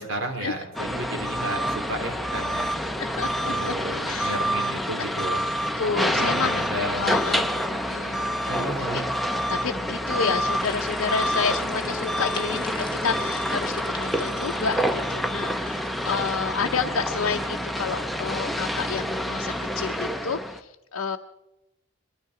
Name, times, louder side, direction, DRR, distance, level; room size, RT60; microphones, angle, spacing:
voice 1, 0.0-2.7 3.4-5.4 6.1-7.2 8.5-9.0, right 1 dB, 65° right, 3 dB, 3.1 m, -33 dB
sound 1, 0.7-20.6, equal, ahead, 0.7 m, -27 dB
voice 2, 3.0-3.7 4.1-4.4 5.8-6.7 7.0-8.5 8.8-9.1 9.5-21.2, left 5 dB, 80° left, 3 dB, 0.7 m, -30 dB
sound 2, 10.6-16.4, left 4 dB, 25° left, 1.1 m, -42 dB
22.5 x 13.0 x 4.8 m, 0.95 s
head